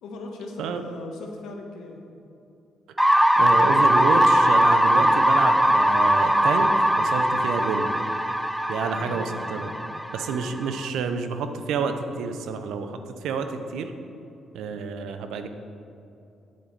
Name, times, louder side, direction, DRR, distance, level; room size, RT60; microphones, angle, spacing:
voice 1, 0.0-2.0 8.9-9.7, left 2 dB, 85° left, 1 dB, 1.2 m, -39 dB
sound 1, 3.0-10.8, equal, 5° right, 0.4 m, -20 dB
voice 2, 3.4-7.9 8.7-9.7 10.1-13.9 14.5-15.5, right 5 dB, 85° right, 7 dB, 0.6 m, -29 dB
8.6 x 7.7 x 4.0 m, 2.8 s
cardioid pair, 90°, 0 cm